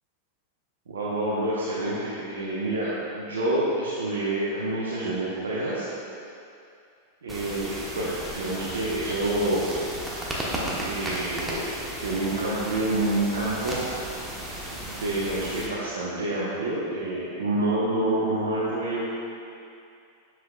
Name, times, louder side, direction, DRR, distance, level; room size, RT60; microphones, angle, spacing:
voice 1, 0.9-5.9 7.2-9.7 10.7-11.7 12.0-14.1 14.7-19.1, right 1 dB, 75° right, -9 dB, 1.0 m, -28 dB
sound 1, 7.3-15.7, right 1 dB, 10° right, 1.1 m, -34 dB
7.4 x 6.2 x 2.4 m, 2.5 s
figure-of-eight pair, 95°, 0 cm